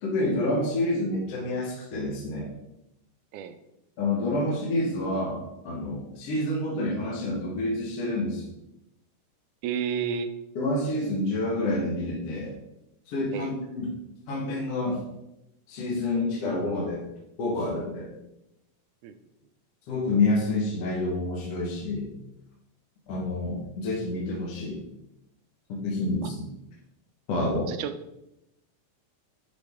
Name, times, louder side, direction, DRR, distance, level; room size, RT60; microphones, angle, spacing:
voice 1, 0.0-2.5 4.0-8.5 10.6-12.5 13.1-13.9 14.3-15.0 15.7-17.0 17.4-18.1 19.9-22.1 23.1-24.8 25.7-26.4 27.3-27.7, left 2 dB, 60° left, -2 dB, 2.0 m, -28 dB
voice 2, 9.6-10.3 13.3-13.5 19.0-19.1 26.2-26.3 27.7-27.9, right 7 dB, 80° right, 9 dB, 2.0 m, -31 dB
9.6 x 5.1 x 3.5 m, 0.87 s
omnidirectional pair, 3.8 m